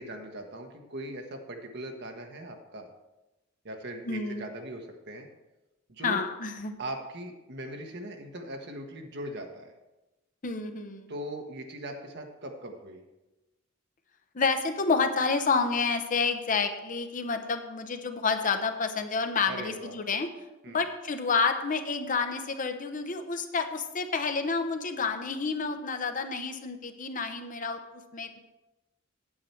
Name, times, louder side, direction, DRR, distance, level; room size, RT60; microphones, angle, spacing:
voice 1, 0.0-2.9 3.6-5.3 5.9-6.2 6.8-9.7 11.1-13.0 19.5-19.9 20.6-20.8, right 1 dB, 60° right, 3 dB, 1.4 m, -40 dB
voice 2, 4.0-4.5 6.0-6.7 10.4-11.1 14.3-20.3 20.7-27.8 28.1-28.4, left 4 dB, 40° left, 7 dB, 0.8 m, -29 dB
8.7 x 8.7 x 4.4 m, 1.0 s
head